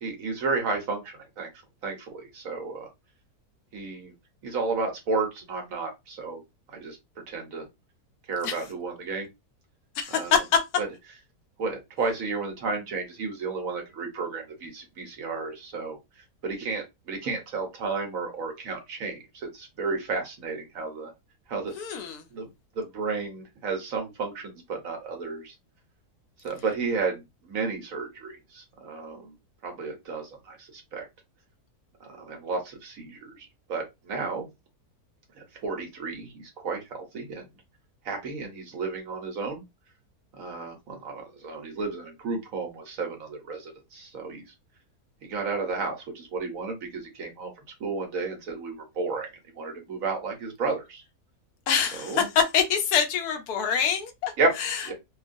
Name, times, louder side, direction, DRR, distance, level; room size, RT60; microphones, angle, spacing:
voice 1, 0.0-1.5 1.8-2.9 3.7-4.1 4.4-6.4 6.7-7.0 7.3-7.7 8.3-9.3 10.1-10.3 10.8-10.9 11.6-16.0 16.4-21.1 21.5-21.7 22.3-22.5 22.8-25.5 26.4-29.3 29.6-31.1 32.1-34.5 35.4-37.4 38.0-39.6 40.3-44.4 45.2-47.5 47.8-49.3 49.5-51.0 52.0-52.3 54.4-54.6 54.8-54.9, right 4 dB, 60° right, 1.1 m, -32 dB
voice 2, 10.0-10.6 21.8-22.2 51.7-54.3 54.6-54.8, left 7 dB, 75° left, 1.2 m, -25 dB
3.0 x 2.3 x 2.4 m
omnidirectional pair, 1.7 m